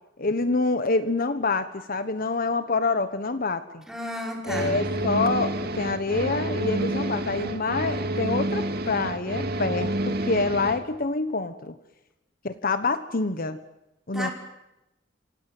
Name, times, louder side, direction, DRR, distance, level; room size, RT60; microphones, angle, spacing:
voice 1, 0.2-3.8 4.4-11.8 12.4-13.6 14.1-14.3, left 3 dB, 50° left, 11 dB, 1.3 m, -26 dB
voice 2, 3.9-4.8 14.1-14.3, equal, 5° right, 1 dB, 5.6 m, -32 dB
sound 1, 4.4-10.8, right 1 dB, 55° right, 2.4 m, -29 dB
28.0 x 26.5 x 7.8 m, 0.92 s
head